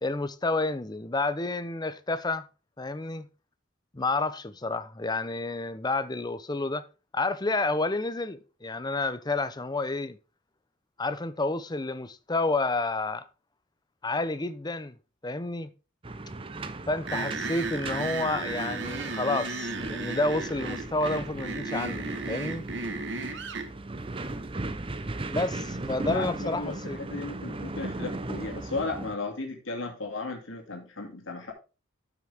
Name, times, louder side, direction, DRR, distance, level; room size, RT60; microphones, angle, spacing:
voice 1, 0.0-2.5 2.8-3.3 3.9-6.8 7.1-10.2 11.0-13.2 14.0-14.9 15.2-15.7 16.9-22.6 25.3-27.0, left 2 dB, 20° left, 0.7 m, -30 dB
sound 1, 16.0-29.2, right 2 dB, 25° right, 0.7 m, -37 dB
sound 2, 17.1-23.7, right 3 dB, 65° right, 1.4 m, -34 dB
voice 2, 26.1-31.5, left 3 dB, 80° left, 2.5 m, -35 dB
12.5 x 6.0 x 3.5 m
head